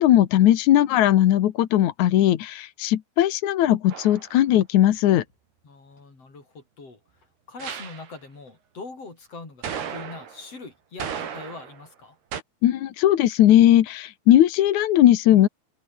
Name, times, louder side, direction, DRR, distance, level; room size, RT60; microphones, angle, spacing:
voice 1, 0.0-5.2 12.6-15.5, left 12 dB, 65° left, 1.9 m, -18 dB
sound 1, 3.9-4.3 7.6-8.1 9.6-10.5 11.0-11.9 12.3-12.4, right 8 dB, 65° right, 5.2 m, -34 dB
voice 2, 5.6-7.0 7.5-12.2, left 3 dB, 35° left, 7.2 m, -42 dB
open air
omnidirectional pair, 4.9 m